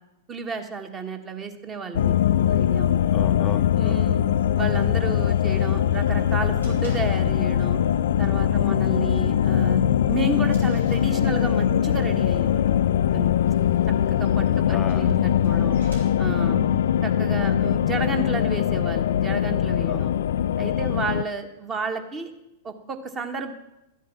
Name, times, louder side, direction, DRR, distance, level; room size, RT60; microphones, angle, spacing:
voice 1, 0.3-3.0 3.8-4.3 4.5-7.8 8.2-9.8 10.1-13.3 14.1-15.2 15.4-15.8 16.2-16.6 17.0-20.1 20.6-22.3 22.6-23.5, right 4 dB, 25° right, 6 dB, 1.5 m, -32 dB
sound 1, 1.9-21.2, left 10 dB, 60° left, 0.4 m, -22 dB
sound 2, 2.3-12.1 14.4-14.5, left 4 dB, 85° left, 0.9 m, -42 dB
voice 2, 3.1-4.4 8.5-8.7 14.2-15.1 16.4-17.0 19.9-20.0 20.9-21.1, left 5 dB, 20° left, 7 dB, 0.6 m, -37 dB
sound 3, 6.6-7.6 7.9-8.3 8.6-8.7 9.1-9.2 9.8-11.8 13.3-16.7, left 2 dB, 80° right, 4.1 m, -45 dB
13.0 x 8.3 x 7.2 m, 0.89 s
figure-of-eight pair, 100°, 0 cm